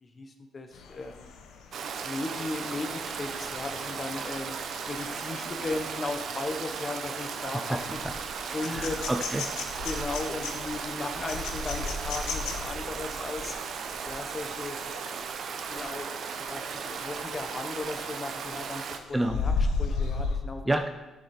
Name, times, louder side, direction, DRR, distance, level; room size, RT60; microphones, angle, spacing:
voice 1, 0.0-1.3 2.0-4.6 4.9-8.0 8.5-9.1 9.8-13.6 14.0-14.8 15.5-16.1 16.4-19.5 19.8-20.7, left 3 dB, 35° left, 6 dB, 1.2 m, -36 dB
sound 1, 0.7-15.3 15.7-16.0 16.3-18.0 18.4-20.4, left 4 dB, 85° left, 1.0 m, -36 dB
Stream, 1.7-19.0, right 6 dB, 65° right, 0.8 m, -36 dB
voice 2, 7.4-7.8 8.6-9.9 19.1-19.4 20.6-20.9, right 1 dB, 15° right, 7 dB, 0.6 m, -30 dB
11.0 x 6.5 x 4.4 m, 1.1 s
cardioid pair, 90°, 0 cm